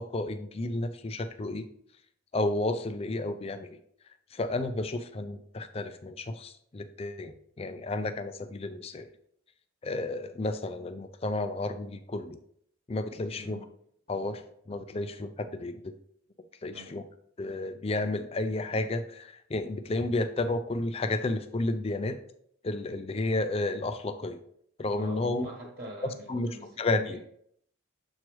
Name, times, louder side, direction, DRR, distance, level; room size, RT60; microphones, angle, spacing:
voice 1, 0.0-1.7 2.3-3.7 4.3-9.1 9.8-12.4 12.9-13.6 14.1-16.0 16.6-17.0 17.4-22.2 22.6-24.4 24.8-25.5 26.3-26.5 26.8-27.2, left 2 dB, 30° left, 10 dB, 0.4 m, -32 dB
voice 2, 13.1-13.7 16.7-17.1 24.9-27.2, equal, 40° right, -3 dB, 1.3 m, -44 dB
7.3 x 4.5 x 3.2 m, 0.68 s
head